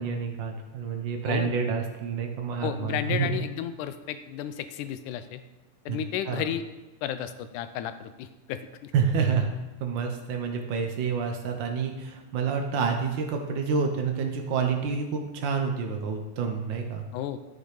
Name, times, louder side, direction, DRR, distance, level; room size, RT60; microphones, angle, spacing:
voice 1, 0.0-3.3 5.9-6.0 6.3-6.5 8.9-9.5 9.8-17.0, right 5 dB, 85° right, 3 dB, 1.0 m, -28 dB
voice 2, 2.6-5.4 5.9-6.6 7.0-8.9 17.1-17.4, left 10 dB, 80° left, 11 dB, 2.1 m, -33 dB
13.0 x 7.1 x 5.0 m, 1.1 s
omnidirectional pair, 3.7 m